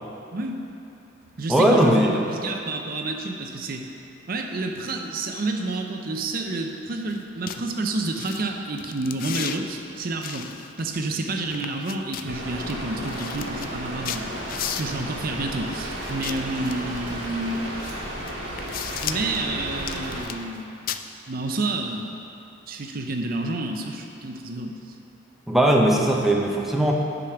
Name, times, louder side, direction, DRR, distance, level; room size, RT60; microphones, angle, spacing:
voice 1, 0.3-0.6 1.4-3.9 4.3-10.5 10.8-14.3 14.7-17.7 19.0-20.8 21.3-22.1 22.7-24.9, right 2 dB, 50° right, 3 dB, 0.6 m, -29 dB
voice 2, 1.5-2.2 25.5-26.9, right 1 dB, ahead, -1 dB, 0.6 m, -19 dB
sound 1, 7.1-7.2 7.5-7.6 8.1-8.4 8.8-9.6 10.2-11.2 11.5-12.3 12.7-12.8 13.0-15.1 16.0-17.0 17.8-17.9 18.3-19.4 19.8-20.6 20.9-21.0, left 10 dB, 45° left, 0.3 m, -34 dB
Rain, 12.3-20.2, equal, 70° right, 1.7 m, -33 dB
8.6 x 5.0 x 5.8 m, 2.7 s
head